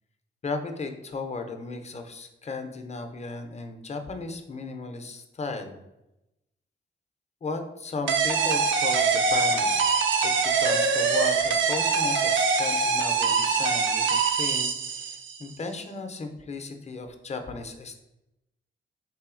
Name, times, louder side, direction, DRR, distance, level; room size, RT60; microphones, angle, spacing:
voice 1, 0.4-5.8 7.4-9.8 10.2-17.9, left 3 dB, 30° left, 6 dB, 0.5 m, -35 dB
sound 1, 8.1-15.4, right 5 dB, 65° right, 0.4 m, -24 dB
3.0 x 2.7 x 2.4 m, 0.92 s
cardioid pair, 50°, 21 cm